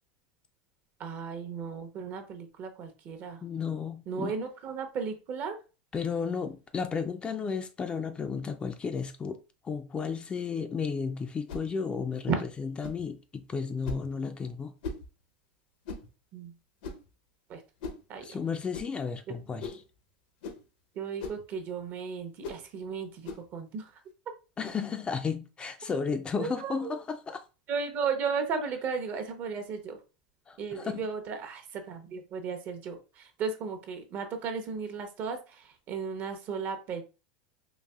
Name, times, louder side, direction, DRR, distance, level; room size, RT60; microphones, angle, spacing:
voice 1, 1.0-3.4 4.1-5.6 12.3-12.4 16.3-16.5 17.5-17.6 18.1-18.3 19.3-19.4 21.0-23.9 26.4-27.0 27.7-30.0 30.6-37.0, right 5 dB, 45° right, 0.8 m, -35 dB
voice 2, 3.4-4.3 5.9-9.4 9.6-14.7 18.2-19.8 24.6-27.4 30.5-31.1, left 5 dB, 20° left, 0.4 m, -33 dB
sound 1, 11.5-11.7 12.8-13.0 13.8-14.1 14.8-15.1 15.8-16.1 16.8-17.1 17.8-18.0 18.7-18.9 19.6-19.9 20.4-20.6 21.2-21.4 22.4-22.6 23.2-23.5, left 3 dB, 75° left, 0.7 m, -39 dB
4.0 x 2.6 x 2.3 m
supercardioid pair, 115°, 5 cm